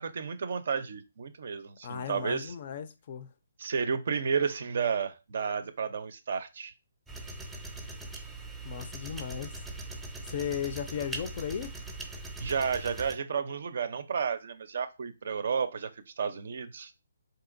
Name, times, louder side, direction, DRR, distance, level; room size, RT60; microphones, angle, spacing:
voice 1, 0.0-2.5 3.6-6.7 12.4-15.9 16.2-16.9, right 6 dB, 60° right, 0.5 m, -32 dB
voice 2, 1.8-3.3 8.6-9.6 10.2-11.8, left 8 dB, 45° left, 0.4 m, -36 dB
sound 1, 7.1-13.1, right 2 dB, 5° right, 0.5 m, -41 dB
3.8 x 2.8 x 2.5 m
figure-of-eight pair, 145°, 0 cm